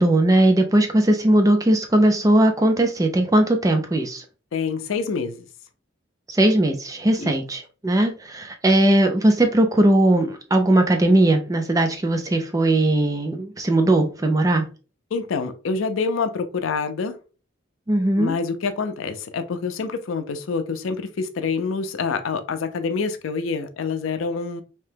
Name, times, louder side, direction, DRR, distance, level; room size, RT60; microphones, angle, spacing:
voice 1, 0.0-4.2 6.3-14.6 17.9-18.3, right 1 dB, 15° right, 0.4 m, -19 dB
voice 2, 4.5-5.5 7.2-7.4 15.1-17.2 18.2-24.6, left 5 dB, 85° left, 0.4 m, -26 dB
2.8 x 2.1 x 3.3 m
head